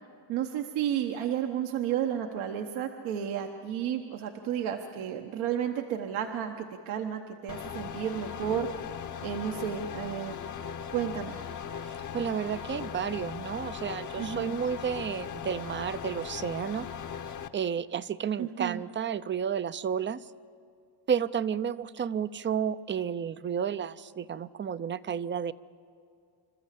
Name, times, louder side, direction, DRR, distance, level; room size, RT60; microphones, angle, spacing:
voice 1, 0.3-8.7 9.2-10.4 10.9-11.4 14.2-14.6 18.4-18.8, right 9 dB, 75° right, 5 dB, 1.2 m, -32 dB
sound 1, 7.5-17.5, left 8 dB, 35° left, 0.9 m, -39 dB
voice 2, 11.8-16.9 17.5-20.2 21.1-25.5, right 7 dB, 25° right, 16 dB, 0.5 m, -31 dB
26.5 x 13.5 x 8.3 m, 2.3 s
cardioid pair, 100°, 49 cm